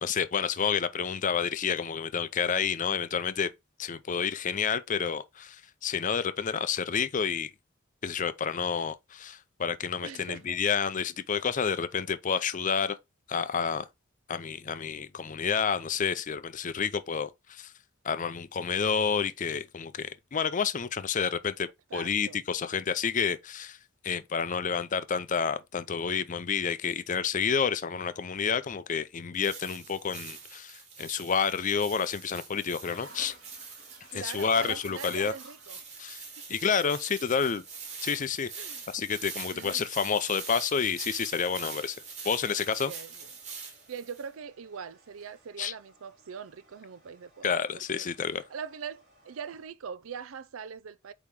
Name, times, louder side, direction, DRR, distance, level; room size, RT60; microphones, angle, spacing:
voice 1, 0.0-3.5 3.8-7.5 8.0-13.0 13.3-13.9 14.3-17.7 18.0-23.8 24.0-33.3 34.1-35.3 36.0-36.2 36.5-37.6 38.0-38.5 38.9-42.0 42.2-42.9 45.6-45.7 47.4-48.4, left 6 dB, 40° left, 0.5 m, -29 dB
voice 2, 10.0-10.6 21.9-22.4 34.1-35.8 36.4-36.5 38.5-38.8 39.5-39.8 42.8-43.3 43.9-48.1 48.5-51.1, right 6 dB, 85° right, 0.5 m, -42 dB
sound 1, 29.3-44.2, right 5 dB, 35° right, 2.7 m, -44 dB
sound 2, 32.8-49.7, right 2 dB, 50° right, 3.0 m, -57 dB
8.3 x 3.0 x 3.7 m
head